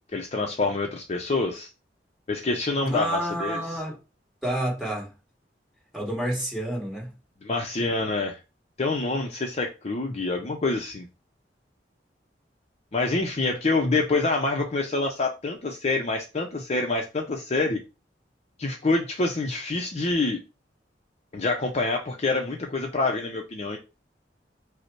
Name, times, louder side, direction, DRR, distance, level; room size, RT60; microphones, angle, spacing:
voice 1, 0.1-1.7 2.3-3.6 7.4-8.4 8.8-11.1 12.9-17.8 18.6-20.4 21.3-23.8, left 3 dB, 40° left, 0.6 m, -26 dB
voice 2, 2.8-3.9 4.4-5.1 5.9-7.1, right 1 dB, ahead, 2.0 m, -29 dB
5.4 x 2.1 x 4.4 m
head